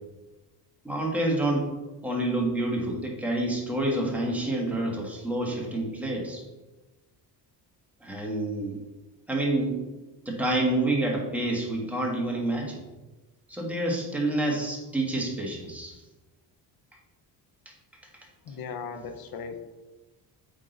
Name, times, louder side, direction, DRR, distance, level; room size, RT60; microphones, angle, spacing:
voice 1, 0.8-1.7 2.0-6.4 8.0-8.8 9.3-9.8 10.2-12.8 13.5-16.0 17.6-17.7, right 1 dB, 5° right, -2 dB, 1.5 m, -28 dB
voice 2, 18.4-19.6, left 5 dB, 55° left, 8 dB, 0.8 m, -37 dB
8.7 x 3.7 x 3.9 m, 1.1 s
cardioid pair, 130°, 42 cm